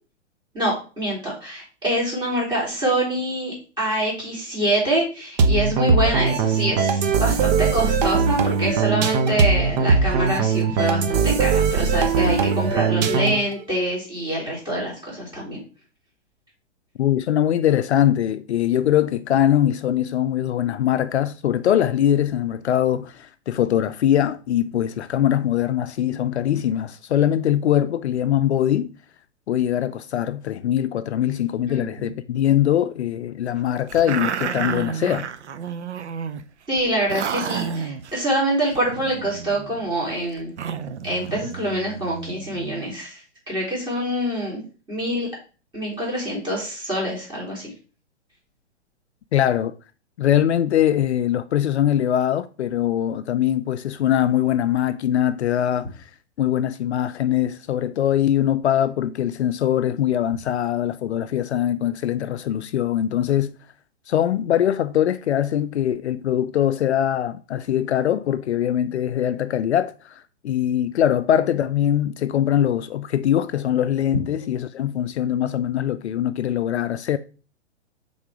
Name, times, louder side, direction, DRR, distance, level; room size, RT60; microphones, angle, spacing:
voice 1, 0.5-15.6 31.7-32.1 36.7-40.5 41.0-43.2 43.5-44.6 44.9-45.3 45.7-47.7, right 1 dB, 10° right, 3.5 m, -25 dB
sound 1, 5.4-13.5, right 5 dB, 35° right, 0.8 m, -20 dB
voice 2, 17.0-28.9 29.5-35.3 49.3-49.7 50.2-56.1 56.4-63.5 64.1-77.2, left 11 dB, 65° left, 0.5 m, -22 dB
sound 2, 33.9-36.4 36.8-36.9 37.1-38.2 38.7-42.9, right 7 dB, 70° right, 0.7 m, -31 dB
5.8 x 3.8 x 4.8 m
figure-of-eight pair, 120°, 35 cm